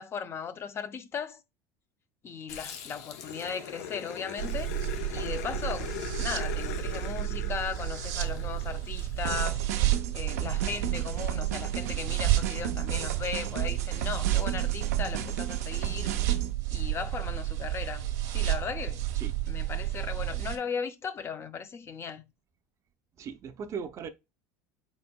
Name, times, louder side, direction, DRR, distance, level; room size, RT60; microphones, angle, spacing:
voice 1, 0.0-1.4 2.2-4.7 5.1-9.6 10.1-16.2 16.7-19.1 19.5-22.2, left 6 dB, 30° left, 0.5 m, -37 dB
Growling, 2.5-9.2, left 9 dB, 85° left, 0.8 m, -40 dB
sound 1, 4.4-20.6, right 14 dB, 70° right, 1.1 m, -31 dB
sound 2, 9.2-16.5, right 10 dB, 90° right, 0.6 m, -35 dB
voice 2, 23.2-24.1, right 6 dB, 40° right, 0.6 m, -38 dB
4.2 x 4.1 x 2.2 m
supercardioid pair, 105°, 8 cm